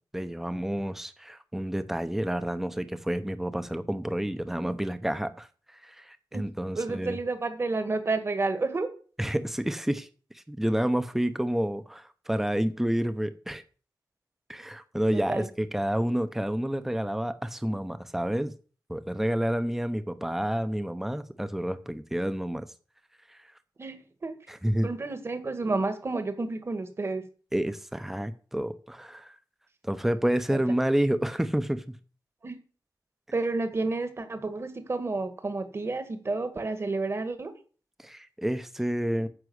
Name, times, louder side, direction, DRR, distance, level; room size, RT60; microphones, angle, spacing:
voice 1, 0.1-5.5 5.7-7.2 9.2-10.1 10.3-13.6 14.5-18.5 18.9-22.7 24.5-24.9 27.5-29.3 29.8-32.0 38.0-39.3, right 1 dB, 5° right, 0.8 m, -29 dB
voice 2, 6.7-8.9 15.1-15.5 23.8-24.3 24.8-27.2 30.5-30.6 32.4-32.6 33.3-37.5, right 3 dB, 35° right, 1.7 m, -30 dB
9.9 x 6.3 x 7.9 m
wide cardioid pair, 160°, 7 cm